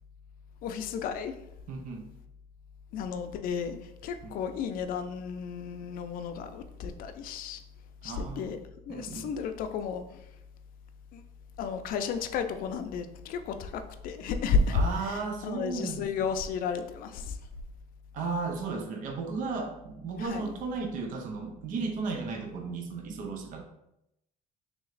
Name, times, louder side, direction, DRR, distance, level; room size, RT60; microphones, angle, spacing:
voice 1, 0.6-1.3 2.9-7.6 8.0-8.6 8.9-10.3 11.1-11.2 11.6-17.4 20.2-20.5, left 5 dB, 65° left, 8 dB, 0.4 m, -32 dB
voice 2, 1.7-2.1 4.2-4.4 8.0-8.5 8.9-9.3 14.7-16.3 18.1-23.6, right 4 dB, 55° right, 3 dB, 0.6 m, -35 dB
3.3 x 2.9 x 3.9 m, 0.84 s
cardioid pair, 155°, 16 cm